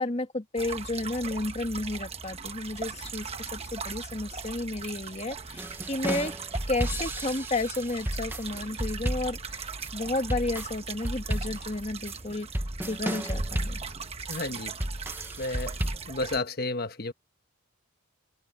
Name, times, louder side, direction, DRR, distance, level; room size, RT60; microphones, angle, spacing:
voice 1, 0.0-6.3 6.7-13.8, left 2 dB, 30° left, 1.4 m, -32 dB
sound 1, 0.6-16.4, right 5 dB, 30° right, 1.1 m, -39 dB
sound 2, 5.6-16.0, right 1 dB, 10° right, 0.9 m, -33 dB
voice 2, 14.3-14.7 15.4-15.7 16.1-17.1, left 2 dB, 45° left, 1.2 m, -31 dB
head